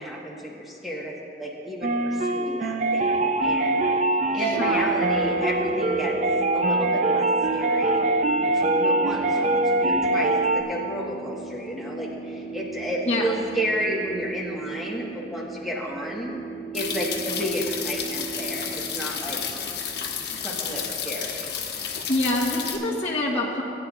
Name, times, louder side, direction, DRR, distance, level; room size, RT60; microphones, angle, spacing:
voice 1, 0.0-3.8 4.1-6.2 6.5-8.1 8.4-16.3 16.7-19.4 20.4-21.5, equal, ahead, -4 dB, 1.5 m, -32 dB
sound 1, 1.8-10.6, right 2 dB, 40° right, 0.5 m, -23 dB
voice 2, 4.3-4.9 13.0-13.3 22.1-23.6, left 1 dB, 35° left, -6 dB, 1.2 m, -26 dB
sound 2, 4.4-20.7, right 5 dB, 60° right, 1.5 m, -36 dB
sound 3, 16.7-22.8, left 7 dB, 65° left, 1.1 m, -31 dB
18.5 x 10.0 x 2.5 m, 2.7 s
head